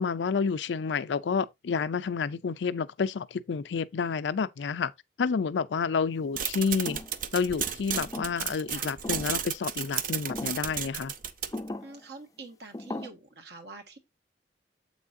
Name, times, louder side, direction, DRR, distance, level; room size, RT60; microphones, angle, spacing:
voice 1, 0.0-4.9 5.2-7.0 7.3-11.1, left 5 dB, 90° left, 0.4 m, -29 dB
sound 1, 6.4-11.7, right 8 dB, 50° right, 0.7 m, -33 dB
sound 2, 6.9-7.2 8.0-8.6 9.0-9.4 10.3-10.7 11.5-12.0 12.7-13.1, left 2 dB, 20° left, 0.4 m, -38 dB
voice 2, 11.8-14.0, right 3 dB, 70° right, 1.6 m, -45 dB
7.6 x 6.0 x 2.6 m
head